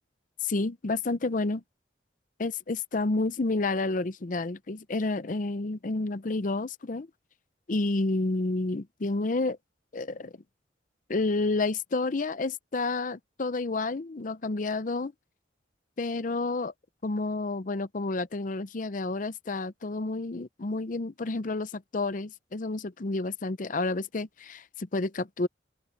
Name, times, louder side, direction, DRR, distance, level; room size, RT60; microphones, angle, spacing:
voice 1, 0.4-1.6 2.4-7.1 7.7-9.6 9.9-10.3 11.1-15.1 16.0-16.7 17.0-25.5, left 3 dB, 45° left, 0.6 m, -30 dB
open air
head